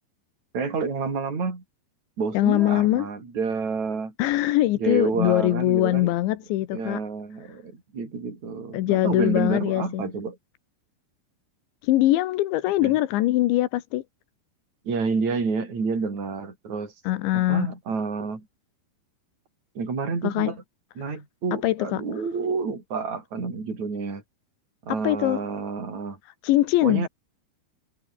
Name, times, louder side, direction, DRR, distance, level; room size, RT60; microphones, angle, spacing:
voice 1, 0.5-1.6 2.2-4.1 4.8-6.1 6.7-10.4 12.8-12.9 14.9-16.9 17.3-18.5 19.8-20.6 21.0-24.2 24.8-26.2 26.8-27.1, right 4 dB, 40° right, 7.2 m, -29 dB
voice 2, 2.4-3.1 4.2-7.0 8.7-10.1 11.8-14.0 17.1-17.7 20.2-20.5 21.1-21.2 21.6-22.0 24.9-25.4 26.4-27.1, left 15 dB, 85° left, 3.5 m, -22 dB
omnidirectional pair, 5.1 m